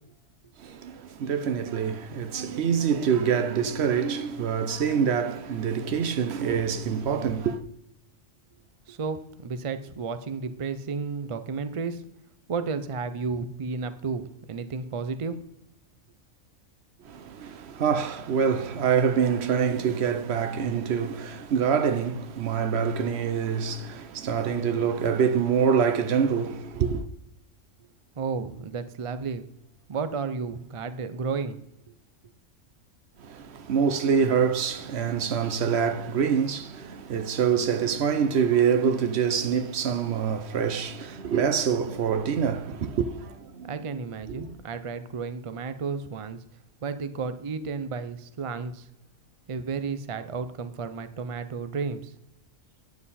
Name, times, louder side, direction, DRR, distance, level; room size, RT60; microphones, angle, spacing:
voice 1, 0.6-7.6 17.0-27.0 33.2-43.7 44.3-44.5, right 7 dB, 65° right, 0.9 m, -25 dB
voice 2, 8.9-12.0 12.5-15.4 28.2-29.4 29.9-31.6 43.7-46.4 46.8-48.9 49.5-52.1, right 5 dB, 45° right, 0.4 m, -32 dB
9.4 x 7.4 x 4.2 m
omnidirectional pair, 1.3 m